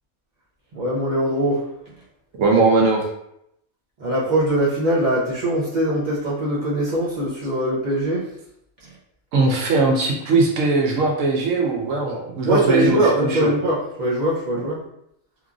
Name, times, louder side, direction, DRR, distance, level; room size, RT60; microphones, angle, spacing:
voice 1, 0.7-1.7 4.0-8.3 12.4-14.8, right 1 dB, 50° right, -6 dB, 0.5 m, -22 dB
voice 2, 2.4-3.0 9.3-13.5 14.6-14.7, right 3 dB, 90° right, -1 dB, 1.0 m, -20 dB
3.0 x 2.4 x 2.3 m, 0.77 s
omnidirectional pair, 1.3 m